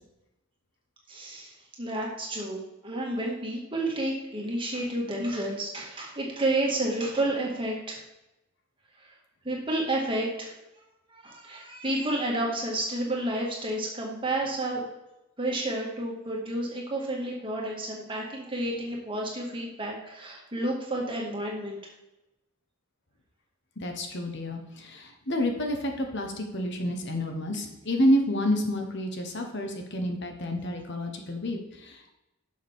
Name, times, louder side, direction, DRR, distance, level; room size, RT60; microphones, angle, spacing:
voice 1, 1.1-1.5 1.8-8.0 9.4-10.6 11.1-14.8 15.4-21.8, right 1 dB, 25° right, -2 dB, 2.1 m, -30 dB
voice 2, 23.8-32.1, equal, 55° left, 4 dB, 1.2 m, -29 dB
11.0 x 6.7 x 3.6 m, 0.93 s
head